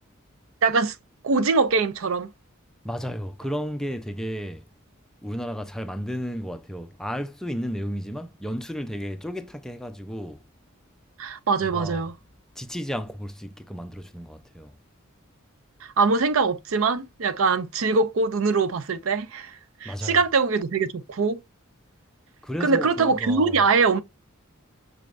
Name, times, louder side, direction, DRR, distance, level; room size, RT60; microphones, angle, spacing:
voice 1, 0.6-1.0 1.2-2.3 11.2-12.1 15.8-21.4 22.6-24.0, right 4 dB, 75° right, 0.5 m, -23 dB
voice 2, 2.8-4.6 5.2-10.4 11.6-12.0 12.6-14.7 19.8-20.2 22.4-23.6, equal, 5° left, 0.4 m, -33 dB
6.1 x 3.3 x 2.5 m
head